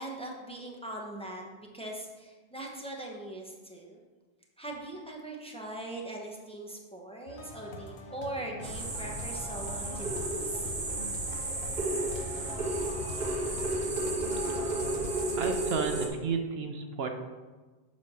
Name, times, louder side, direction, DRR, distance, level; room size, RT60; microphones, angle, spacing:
voice 1, 0.0-4.0 4.6-10.7, right 1 dB, 5° left, -1 dB, 1.0 m, -41 dB
sound 1, 7.3-15.5, left 2 dB, 85° left, 1.2 m, -44 dB
sound 2, 8.6-16.1, right 2 dB, 55° right, 1.5 m, -32 dB
voice 2, 15.4-17.1, right 5 dB, 70° right, 5 dB, 0.9 m, -32 dB
7.4 x 4.2 x 6.2 m, 1.3 s
omnidirectional pair, 1.1 m